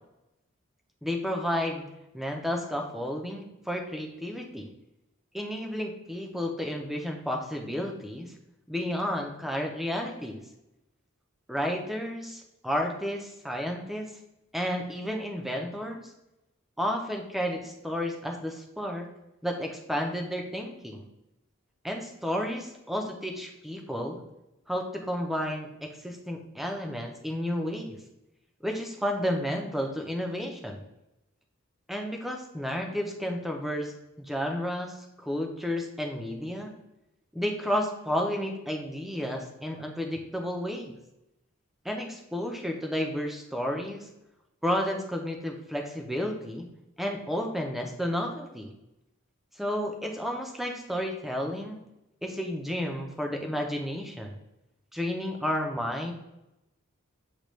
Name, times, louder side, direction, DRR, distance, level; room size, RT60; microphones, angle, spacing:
voice 1, 1.0-1.8 2.1-4.7 5.3-8.3 8.7-10.4 11.5-14.1 14.5-16.1 16.8-19.1 19.4-21.1 21.8-24.2 24.7-28.0 28.6-30.8 31.9-36.7 37.3-40.9 41.8-44.1 44.6-46.7 47.0-48.7 49.6-51.8 52.2-54.4 54.9-56.1, equal, ahead, 2 dB, 0.5 m, -32 dB
6.6 x 2.3 x 3.1 m, 0.91 s
head